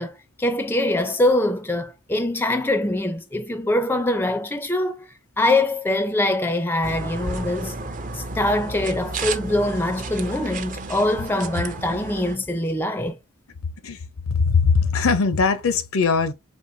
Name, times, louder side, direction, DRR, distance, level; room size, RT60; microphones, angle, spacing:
voice 1, 0.0-7.7 8.1-13.2, left 1 dB, 10° left, 0.4 m, -23 dB
sound 1, 6.8-12.4, right 3 dB, 35° right, 0.5 m, -32 dB
voice 2, 14.5-16.3, left 5 dB, 75° left, 0.6 m, -20 dB
4.4 x 3.0 x 2.6 m
head